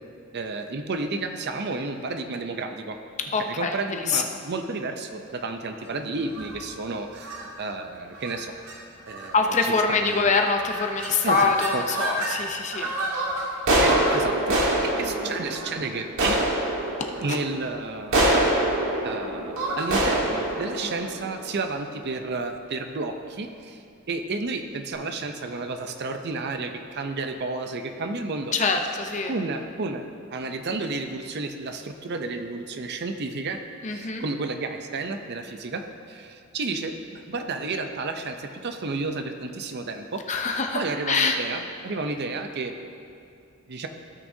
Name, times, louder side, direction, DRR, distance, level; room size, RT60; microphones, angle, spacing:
voice 1, 0.3-3.0 3.4-9.4 9.9-10.3 11.2-11.8 13.8-16.5 17.2-18.5 19.0-28.5 29.3-33.6 33.9-35.8 36.1-40.2 40.7-42.7 43.7-43.9, right 3 dB, 50° right, 6 dB, 0.6 m, -32 dB
voice 2, 3.3-4.2 9.3-12.9 15.0-15.3 17.3-17.4 20.8-20.9 28.5-29.4 33.8-34.3 40.3-41.4, left 4 dB, 35° left, 4 dB, 0.6 m, -25 dB
sound 1, 6.3-6.6 7.2-7.4 8.1-8.4 8.6-8.7 9.1-9.5 10.0-10.4 10.6-12.3 12.7-21.9, right 1 dB, 65° right, 1.6 m, -26 dB
16.0 x 6.1 x 2.7 m, 2.6 s
head